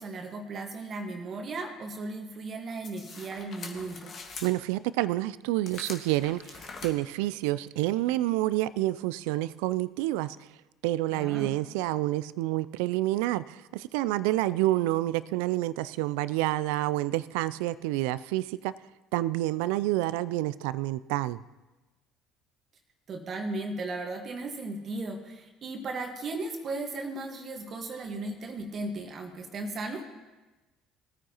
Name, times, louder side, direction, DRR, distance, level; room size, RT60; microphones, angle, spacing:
voice 1, 0.0-4.1 11.1-11.5 23.1-30.0, right 2 dB, 45° right, 3 dB, 1.4 m, -36 dB
sound 1, 2.8-4.5 5.7-6.9, left 4 dB, 45° left, 1.6 m, -43 dB
voice 2, 4.4-10.4 10.8-18.7 19.1-21.4, right 16 dB, 75° right, 17 dB, 0.3 m, -28 dB
19.0 x 9.3 x 2.9 m, 1.1 s
hypercardioid pair, 65°, 0 cm